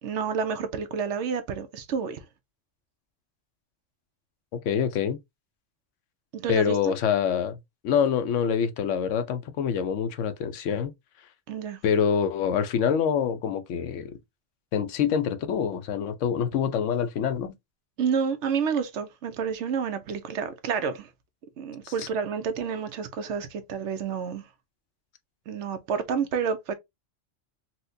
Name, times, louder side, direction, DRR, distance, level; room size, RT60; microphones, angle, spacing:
voice 1, 0.0-2.3 6.3-6.9 11.5-11.8 18.0-21.1 21.6-24.5 25.5-26.7, right 6 dB, 70° right, 0.9 m, -29 dB
voice 2, 4.5-5.2 6.5-7.6 7.8-10.9 11.8-14.1 14.7-17.5 21.8-21.9, left 7 dB, 75° left, 0.9 m, -26 dB
4.2 x 2.1 x 2.6 m
omnidirectional pair, 1.3 m